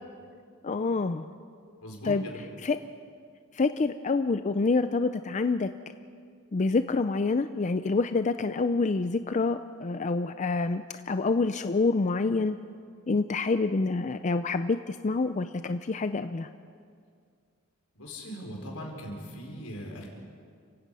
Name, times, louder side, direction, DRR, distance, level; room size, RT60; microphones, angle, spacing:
voice 1, 0.6-1.3 2.0-2.2 2.6-2.8 3.5-5.7 6.5-12.6 13.1-16.5, left 3 dB, 35° left, 10 dB, 0.5 m, -27 dB
voice 2, 1.8-2.4 17.9-20.1, equal, 80° left, 0 dB, 4.7 m, -40 dB
29.5 x 16.5 x 5.5 m, 2.2 s
head